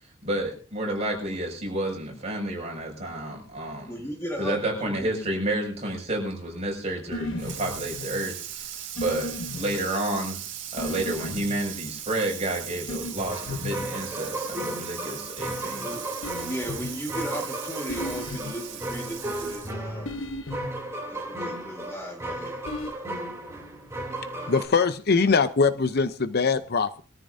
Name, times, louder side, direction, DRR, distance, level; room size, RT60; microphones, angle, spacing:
voice 1, 0.2-4.1 4.4-10.4 10.7-16.0, right 1 dB, 35° right, 0 dB, 6.2 m, -30 dB
voice 2, 3.9-4.6 5.0-5.1 15.8-16.0 16.4-20.1 21.1-22.6 24.3-24.6, equal, 10° left, 1 dB, 1.7 m, -36 dB
sound 1, 7.1-8.3 9.0-9.8 10.8-11.6 12.9-13.1 13.5-13.7 16.2-16.9 17.9-18.5 20.1-20.7 22.7-22.9, left 2 dB, 70° left, 1.2 m, -34 dB
Water tap faucet / Sink (filling or washing), 7.4-19.9, right 10 dB, 60° right, 2.2 m, -39 dB
sound 2, 13.2-24.7, right 1 dB, 15° right, 3.2 m, -35 dB
voice 3, 24.5-27.0, left 4 dB, 50° left, 12 dB, 0.7 m, -22 dB
23.0 x 13.5 x 2.7 m, 0.36 s
head